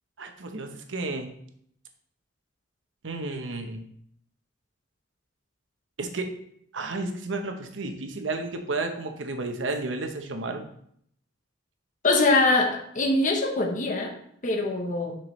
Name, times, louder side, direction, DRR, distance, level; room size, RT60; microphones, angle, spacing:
voice 1, 0.2-1.3 3.0-3.8 6.0-6.3 6.7-10.7, right 3 dB, 85° right, 5 dB, 0.9 m, -32 dB
voice 2, 12.0-14.1 14.4-15.2, left 2 dB, 45° left, 2 dB, 1.0 m, -23 dB
7.7 x 5.8 x 3.2 m, 0.69 s
head